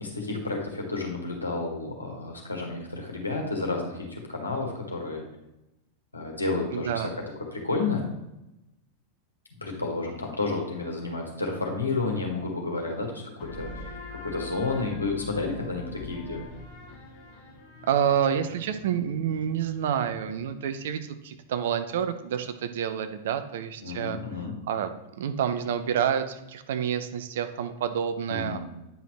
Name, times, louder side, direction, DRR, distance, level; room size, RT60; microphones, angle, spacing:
voice 1, 0.0-5.2 6.1-7.1 7.5-8.1 9.5-16.4 23.8-24.5 28.3-28.6, left 3 dB, 80° left, 1 dB, 1.6 m, -31 dB
voice 2, 6.7-7.1 17.8-24.2 24.7-28.6, right 8 dB, 55° right, 9 dB, 0.6 m, -28 dB
sound 1, 13.4-20.7, left 3 dB, 40° left, 1.9 m, -44 dB
9.2 x 5.8 x 3.2 m, 0.92 s
figure-of-eight pair, 90°, 0 cm